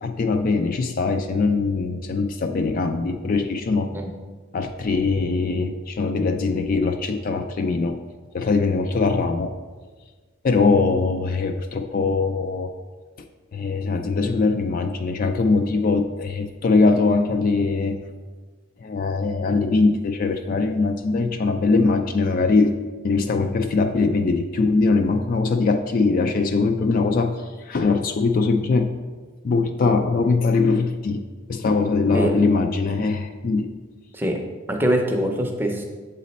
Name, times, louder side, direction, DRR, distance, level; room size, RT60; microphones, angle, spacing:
voice 1, 0.0-3.9 4.5-8.0 8.3-9.5 10.4-12.7 13.5-18.0 18.8-22.7 23.0-28.9 29.4-31.2 31.5-33.7, left 3 dB, 40° left, 7 dB, 0.3 m, -21 dB
voice 2, 34.7-35.8, equal, 10° right, 2 dB, 0.5 m, -23 dB
7.3 x 4.1 x 4.1 m, 1.4 s
head